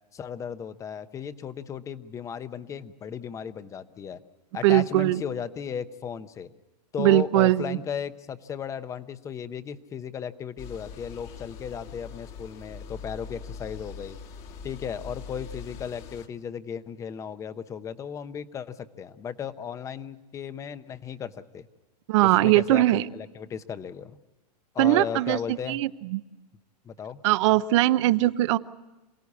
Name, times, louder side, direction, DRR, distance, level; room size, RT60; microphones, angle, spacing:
voice 1, 0.1-4.2 4.5-6.5 6.9-14.2 14.6-21.7 22.2-24.2 24.7-25.8 26.8-27.2, left 7 dB, 15° left, 13 dB, 0.8 m, -35 dB
voice 2, 4.6-5.2 7.0-7.8 22.1-23.1 24.8-26.2 27.2-28.6, right 16 dB, 45° right, 15 dB, 0.7 m, -21 dB
sound 1, 10.6-16.3, left 6 dB, 30° left, 1.4 m, -42 dB
27.5 x 17.0 x 8.4 m, 1.1 s
hypercardioid pair, 150°, 21 cm